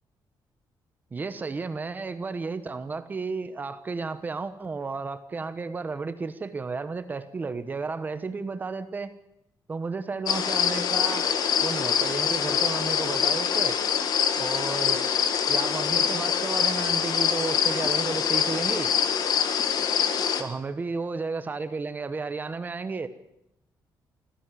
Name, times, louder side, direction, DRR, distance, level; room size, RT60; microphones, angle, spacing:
voice 1, 1.1-9.1 9.7-11.2 11.6-13.8 14.4-15.1 15.5-18.9 20.4-23.1, right 4 dB, 20° right, 11 dB, 1.1 m, -33 dB
sound 1, 10.3-20.4, left 7 dB, 55° left, 1.8 m, -25 dB
26.5 x 14.5 x 7.6 m, 0.81 s
cardioid pair, 180°, 8 cm